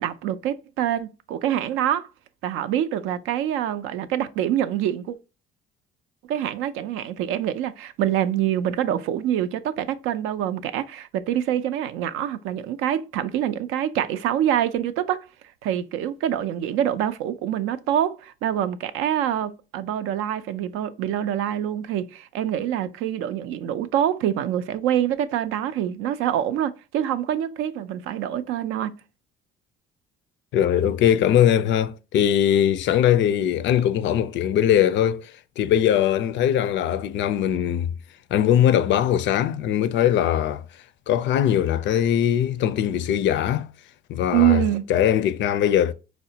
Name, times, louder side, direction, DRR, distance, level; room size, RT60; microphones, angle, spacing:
voice 1, 0.0-2.1 2.4-5.2 6.3-15.3 15.6-29.0 44.3-44.9, right 11 dB, 80° right, 0.4 m, -25 dB
voice 2, 30.5-37.9 38.3-40.6 41.1-43.7 44.1-44.6 44.9-45.9, left 10 dB, 60° left, 0.4 m, -21 dB
4.6 x 2.1 x 2.7 m
cardioid pair, 95°, 21 cm